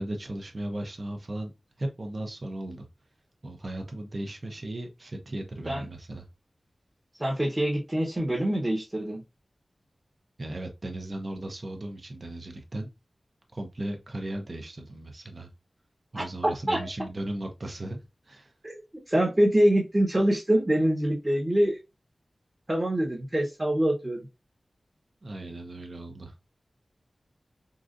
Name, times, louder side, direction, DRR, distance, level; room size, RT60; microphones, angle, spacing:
voice 1, 0.0-1.5 1.8-2.9 3.4-6.2 10.4-12.9 13.5-15.5 16.1-18.0 18.3-18.5 25.2-26.3, right 1 dB, 45° right, 0.7 m, -36 dB
voice 2, 7.2-9.2 16.1-16.8 18.6-18.7 19.1-21.8 22.7-24.3, right 1 dB, 20° right, 0.9 m, -25 dB
3.8 x 2.4 x 2.5 m
wide cardioid pair, 85°, 0 cm